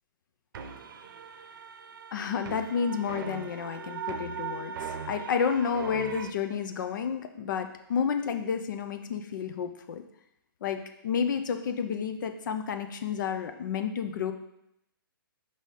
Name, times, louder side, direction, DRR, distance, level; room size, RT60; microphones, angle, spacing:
sound 1, 0.5-6.3, right 6 dB, 60° right, 0.7 m, -39 dB
voice 1, 2.1-10.0 10.6-14.3, left 6 dB, 55° left, 7 dB, 0.6 m, -31 dB
5.5 x 3.9 x 4.8 m, 0.80 s
hypercardioid pair, 140°, 12 cm